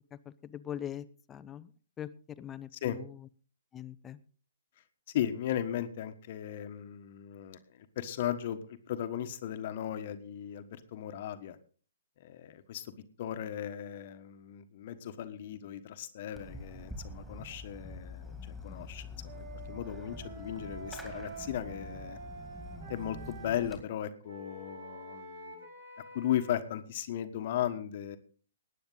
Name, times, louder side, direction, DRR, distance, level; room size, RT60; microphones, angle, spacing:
voice 1, 0.1-1.7 2.0-2.1 2.4-3.1 3.7-4.2, left 10 dB, 15° left, 13 dB, 0.7 m, -42 dB
voice 2, 5.1-11.6 12.2-12.9 13.2-22.2 22.9-25.6 26.1-28.2, left 11 dB, 45° left, 10 dB, 1.3 m, -36 dB
Fireworks, 16.3-23.8, left 1 dB, 5° right, 2.6 m, -46 dB
Wind instrument woodwind instrument, 19.2-23.7 24.2-26.5, right 2 dB, 65° right, 5.1 m, -47 dB
19.0 x 9.2 x 3.9 m, 0.40 s
figure-of-eight pair, 125°, 0 cm